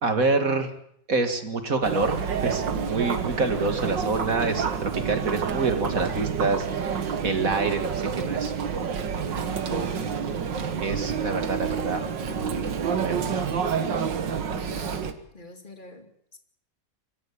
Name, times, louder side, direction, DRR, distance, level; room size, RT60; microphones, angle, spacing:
voice 1, 0.0-0.7 1.1-9.9 10.8-13.4, right 3 dB, 50° right, 7 dB, 2.5 m, -27 dB
Chatter, 1.8-15.1, right 7 dB, 80° right, 2.2 m, -28 dB
voice 2, 14.5-16.4, left 4 dB, 25° left, 5 dB, 2.6 m, -45 dB
25.0 x 13.5 x 8.8 m, 0.69 s
omnidirectional pair, 1.9 m